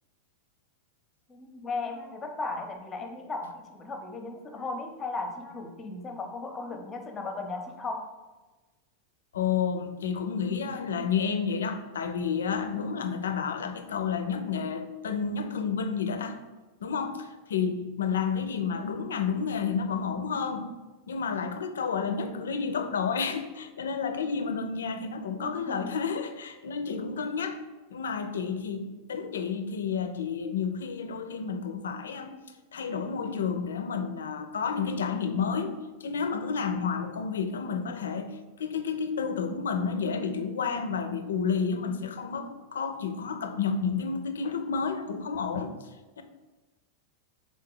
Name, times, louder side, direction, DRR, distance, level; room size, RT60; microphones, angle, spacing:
voice 1, 1.3-8.0 25.4-25.9, left 3 dB, 20° left, 4 dB, 0.6 m, -36 dB
voice 2, 9.3-16.4 16.8-20.7 21.1-27.6 27.9-32.4 32.7-35.7 36.0-45.7 46.2-46.3, left 6 dB, 65° left, 8 dB, 0.4 m, -30 dB
3.7 x 3.7 x 3.8 m, 1.2 s
figure-of-eight pair, 90°, 0 cm